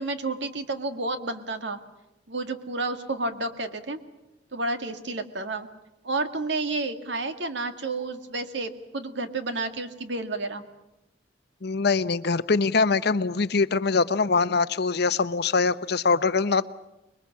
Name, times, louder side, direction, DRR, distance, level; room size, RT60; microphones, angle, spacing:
voice 1, 0.0-1.8 2.3-4.0 4.5-5.7 6.0-10.6, right 2 dB, 70° right, 8 dB, 1.9 m, -30 dB
voice 2, 11.6-16.7, left 4 dB, 60° left, 14 dB, 0.8 m, -23 dB
26.0 x 21.5 x 7.3 m, 0.97 s
head